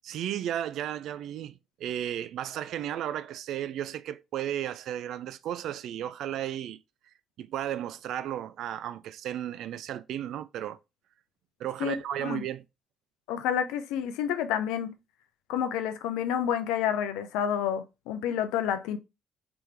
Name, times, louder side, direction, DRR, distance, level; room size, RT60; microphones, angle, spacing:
voice 1, 0.0-6.8 7.4-10.8 11.6-12.6, right 11 dB, 65° right, 0.3 m, -34 dB
voice 2, 11.8-12.4 13.3-15.0 15.5-19.0, left 9 dB, 75° left, 0.4 m, -29 dB
3.5 x 2.9 x 3.2 m
hypercardioid pair, 50°, 0 cm